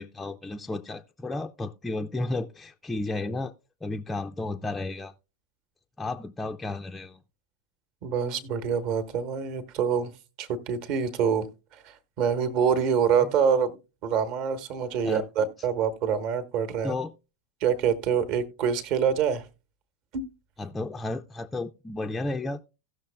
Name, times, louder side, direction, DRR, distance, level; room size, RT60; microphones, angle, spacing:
voice 1, 0.0-3.5 3.8-5.1 6.0-7.2 15.0-15.3 16.8-17.1 20.6-22.6, left 2 dB, 10° left, 0.4 m, -33 dB
voice 2, 8.0-10.1 10.4-11.5 11.7-13.8 14.0-17.0 17.6-19.5 20.1-20.2, right 7 dB, 40° right, 1.1 m, -26 dB
17.0 x 6.4 x 2.2 m
figure-of-eight pair, 90°, 0 cm